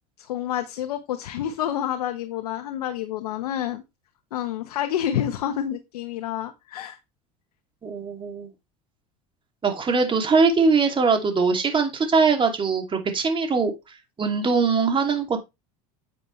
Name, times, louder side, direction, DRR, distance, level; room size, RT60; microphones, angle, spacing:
voice 1, 0.2-3.8 4.3-7.0, left 10 dB, 90° left, 8 dB, 1.2 m, -28 dB
voice 2, 7.8-8.5 9.6-13.7 14.2-15.4, right 4 dB, 25° right, 5 dB, 2.7 m, -21 dB
8.7 x 8.6 x 3.2 m, 0.23 s
supercardioid pair, 95°, 19 cm